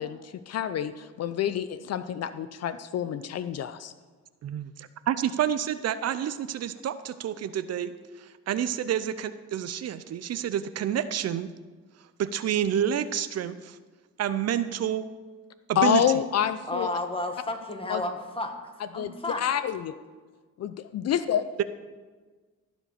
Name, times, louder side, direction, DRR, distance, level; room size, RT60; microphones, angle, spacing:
voice 1, 0.0-3.9 15.8-16.9 17.9-18.0 19.0-19.9 20.6-21.5, left 9 dB, 55° left, 12 dB, 0.5 m, -28 dB
voice 2, 4.4-7.9 8.2-11.5 12.2-13.8 14.2-15.0 15.7-16.0 21.6-21.7, right 10 dB, 55° right, 13 dB, 0.6 m, -29 dB
voice 3, 16.7-18.6 18.9-19.4, left 2 dB, 20° left, 5 dB, 1.5 m, -32 dB
15.0 x 5.1 x 6.6 m, 1.4 s
cardioid pair, 90°, 30 cm